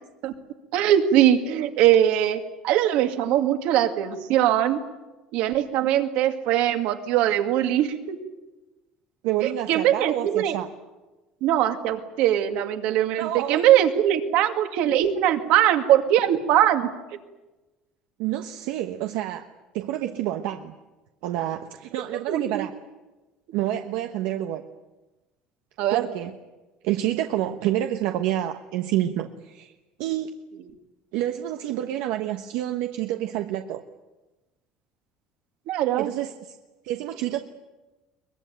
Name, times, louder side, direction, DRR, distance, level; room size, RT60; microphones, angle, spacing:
voice 1, 0.7-4.8 5.3-8.2 9.4-10.6 11.4-16.9 22.1-22.7 25.8-26.1 35.7-36.1, right 11 dB, 65° right, 6 dB, 2.2 m, -21 dB
voice 2, 9.2-10.7 13.2-13.6 18.2-19.4 19.7-20.7 21.2-22.7 23.5-24.6 25.9-26.3 26.8-29.7 30.0-30.3 31.1-33.8 36.0-36.6 36.8-37.4, right 13 dB, 80° right, 6 dB, 1.2 m, -28 dB
23.0 x 21.0 x 9.3 m, 1.1 s
cardioid pair, 175°, 2 cm